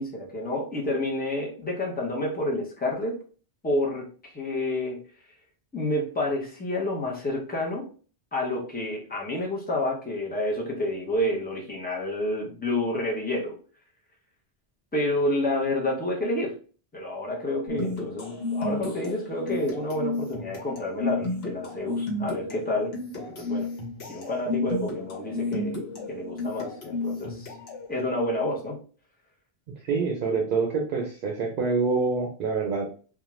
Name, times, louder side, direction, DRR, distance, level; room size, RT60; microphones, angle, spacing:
voice 1, 0.0-3.2 3.6-5.0 5.7-7.9 8.3-13.6 14.9-16.5 16.9-22.9 23.2-23.7 24.1-25.8 26.1-27.5 27.9-28.8, left 1 dB, 10° left, -2 dB, 0.6 m, -29 dB
sound 1, 17.7-27.9, left 2 dB, 75° left, 1.0 m, -32 dB
voice 2, 29.8-32.9, right 4 dB, 60° right, 1 dB, 0.7 m, -26 dB
2.3 x 2.2 x 3.0 m, 0.40 s
omnidirectional pair, 1.1 m